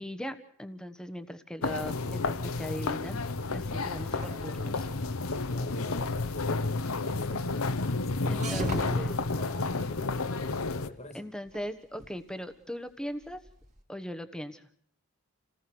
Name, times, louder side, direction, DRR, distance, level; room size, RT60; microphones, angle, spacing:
voice 1, 0.0-3.2 3.5-4.9 8.3-9.1 11.1-13.4 13.9-14.8, equal, 5° left, 9 dB, 1.2 m, -39 dB
sound 1, 1.6-10.9, left 3 dB, 75° left, 1.0 m, -31 dB
sound 2, 2.2-13.8, right 2 dB, 35° right, 2.6 m, -45 dB
voice 2, 5.5-6.8 7.0-7.7 8.1-10.3 10.9-11.3, left 1 dB, 30° left, 9 dB, 1.9 m, -46 dB
28.5 x 17.5 x 6.2 m, 0.66 s
head